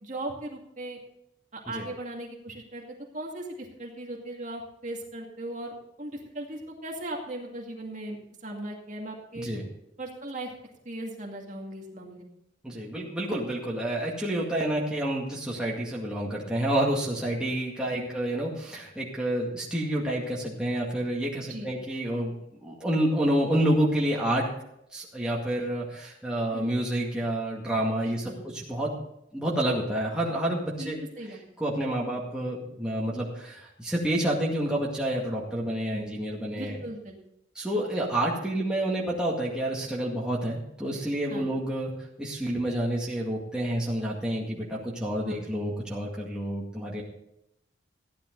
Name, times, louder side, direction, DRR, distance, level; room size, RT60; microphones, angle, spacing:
voice 1, 0.0-1.0 1.5-2.8 3.1-9.5 10.0-10.5 10.8-12.3 17.9-18.1 21.5-21.7 26.5-26.7 28.0-28.4 30.8-31.4 35.9-36.1 36.5-37.2 41.3-41.5 45.2-45.4, right 1 dB, 40° right, -1 dB, 2.3 m, -38 dB
voice 2, 12.6-22.3 22.6-24.5 24.9-28.3 28.7-29.0 29.3-31.0 31.6-36.8 37.6-41.9 42.2-47.0, right 1 dB, 5° right, -5 dB, 2.1 m, -29 dB
15.0 x 10.5 x 4.0 m, 0.79 s
head